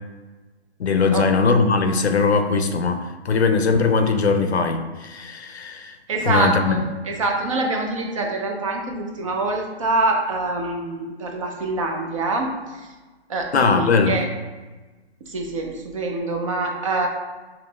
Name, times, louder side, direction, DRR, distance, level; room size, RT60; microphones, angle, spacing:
voice 1, 0.8-6.0 6.2-6.8 13.5-14.2, left 4 dB, 75° left, 7 dB, 0.6 m, -20 dB
voice 2, 6.1-12.9 13.3-14.3 15.3-17.1, right 2 dB, 30° right, 2 dB, 0.5 m, -25 dB
5.0 x 2.9 x 2.3 m, 1.2 s
figure-of-eight pair, 130°, 33 cm